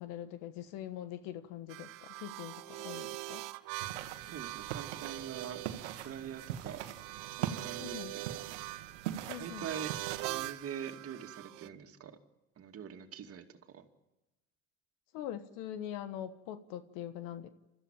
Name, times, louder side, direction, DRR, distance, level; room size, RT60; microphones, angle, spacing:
voice 1, 0.0-3.4 7.8-8.1 9.3-9.6 15.1-17.5, left 11 dB, 70° left, 11 dB, 1.4 m, -43 dB
sound 1, 1.7-11.7, right 19 dB, 65° right, 0.9 m, -43 dB
sound 2, 3.8-10.5, right 11 dB, 85° right, 1.5 m, -42 dB
voice 2, 4.2-6.8 7.2-8.4 9.4-10.0 10.2-12.2 12.6-13.9, right 8 dB, 40° right, 5 dB, 2.4 m, -44 dB
29.5 x 14.0 x 9.0 m, 1.0 s
hypercardioid pair, 80°, 34 cm